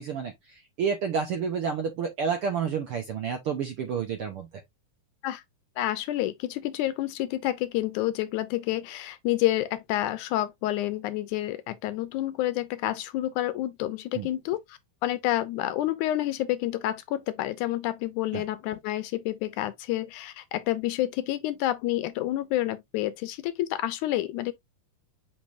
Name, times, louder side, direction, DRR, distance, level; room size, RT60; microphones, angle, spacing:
voice 1, 0.0-4.6 14.1-14.3 18.3-18.4, right 6 dB, 70° right, 1.3 m, -30 dB
voice 2, 5.8-24.5, left 14 dB, 80° left, 2.0 m, -29 dB
7.3 x 5.3 x 2.5 m
omnidirectional pair, 3.7 m